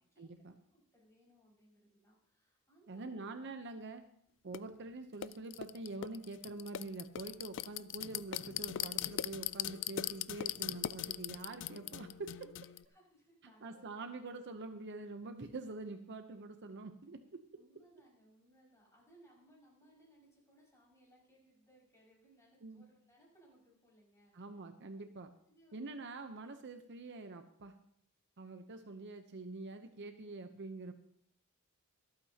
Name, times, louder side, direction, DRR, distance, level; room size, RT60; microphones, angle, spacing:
voice 1, 0.2-0.5 2.9-4.0 4.4-12.4 13.6-17.4 22.6-22.8 24.3-25.3 25.7-27.7 28.4-30.9, right 3 dB, 55° right, 7 dB, 0.8 m, -45 dB
voice 2, 0.7-3.2 9.0-9.1 12.3-14.0 17.5-24.6 25.5-26.0, right 1 dB, 15° left, -5 dB, 5.8 m, -66 dB
sound 1, 4.5-4.6 5.2-12.8, left 12 dB, 55° left, 0.4 m, -40 dB
24.0 x 8.8 x 2.9 m, 0.70 s
head